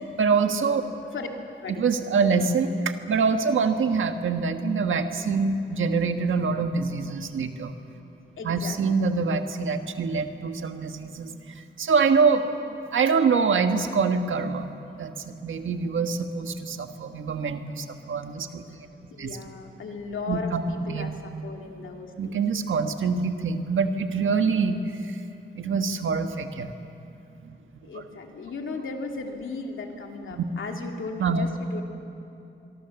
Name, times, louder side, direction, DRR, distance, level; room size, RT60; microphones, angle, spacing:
voice 1, 0.2-0.8 1.8-7.7 8.4-11.3 11.8-12.5 12.9-14.7 15.0-18.6 19.2-19.4 20.3-20.6 20.9-21.2 22.2-25.2 25.5-26.7 27.4-27.6 30.3-30.4 31.2-31.4, right 5 dB, 80° right, 7 dB, 1.5 m, -25 dB
voice 2, 8.4-9.1 19.1-22.4 27.8-31.8, left 4 dB, 80° left, 3 dB, 2.5 m, -36 dB
24.0 x 24.0 x 7.1 m, 2.7 s
cardioid pair, 85°, 20 cm